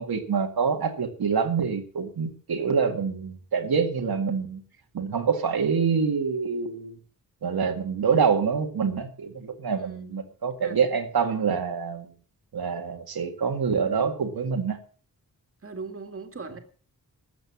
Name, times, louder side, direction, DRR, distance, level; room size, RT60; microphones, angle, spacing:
voice 1, 0.0-4.6 4.9-7.0 7.4-12.1 12.5-14.8, right 6 dB, 90° right, 3 dB, 2.0 m, -26 dB
voice 2, 9.8-10.2 10.6-10.8 15.6-16.6, right 4 dB, 35° right, 5 dB, 2.0 m, -39 dB
13.5 x 7.9 x 7.1 m, 0.42 s
wide cardioid pair, 155°, 36 cm